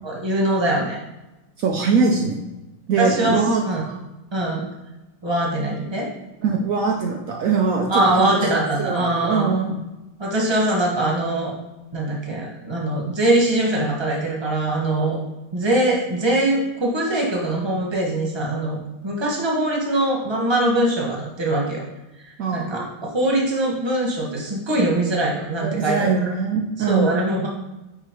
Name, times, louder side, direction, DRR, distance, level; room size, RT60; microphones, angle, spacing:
voice 1, 0.0-1.0 3.0-3.8 4.3-4.7 5.2-6.1 7.9-9.5 10.2-11.5 11.9-15.2 15.5-21.8 22.3-26.1 26.9-27.5, right 1 dB, 15° right, -2 dB, 1.0 m, -22 dB
voice 2, 1.6-2.4 2.9-3.6 6.4-8.4 8.8-9.8 22.4-22.7 25.6-27.2, right 5 dB, 85° right, 1 dB, 0.7 m, -22 dB
5.0 x 4.8 x 4.4 m, 1.0 s
omnidirectional pair, 2.2 m